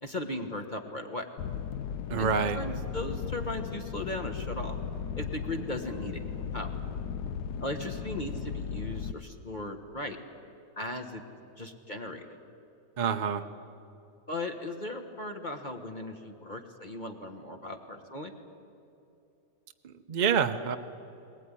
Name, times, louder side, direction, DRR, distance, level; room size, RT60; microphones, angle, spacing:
voice 1, 0.0-1.3 2.2-2.3 2.5-4.8 5.1-6.7 7.6-10.2 10.8-11.2 11.6-12.4 14.3-18.3, left 1 dB, 30° left, 4 dB, 1.4 m, -37 dB
sound 1, 1.4-9.1, left 7 dB, 70° left, 1.2 m, -36 dB
voice 2, 2.1-2.6 13.0-13.5 19.8-20.8, right 6 dB, 45° right, 7 dB, 0.6 m, -27 dB
21.0 x 20.0 x 9.9 m, 2.8 s
omnidirectional pair, 1.9 m